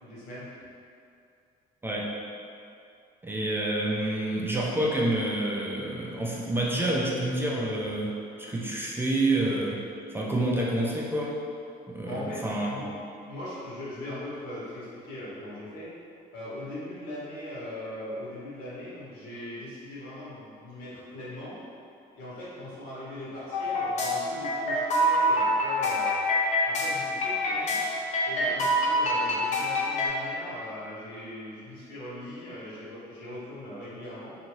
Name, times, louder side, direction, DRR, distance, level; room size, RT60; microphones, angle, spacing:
voice 1, 0.0-0.6 12.0-12.9 13.2-15.9 16.3-21.6 22.2-26.2 26.6-27.8 28.2-34.4, left 1 dB, 85° left, -9 dB, 1.2 m, -40 dB
voice 2, 3.2-9.8 10.1-11.4 11.9-12.7, right 1 dB, 15° right, -4 dB, 0.4 m, -28 dB
sound 1, 23.5-30.1, left 1 dB, 45° left, 0.6 m, -26 dB
2.7 x 2.7 x 3.0 m, 2.5 s
cardioid pair, 110°, 17 cm